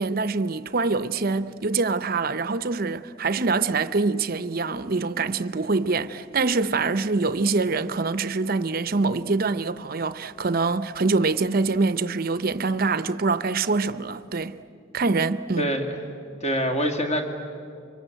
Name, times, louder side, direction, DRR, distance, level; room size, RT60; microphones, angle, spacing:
voice 1, 0.0-14.6 14.9-15.7, right 3 dB, 50° right, 0.7 m, -25 dB
voice 2, 15.6-16.0 16.4-17.2, equal, 35° left, 2.3 m, -25 dB
26.5 x 24.5 x 9.1 m
head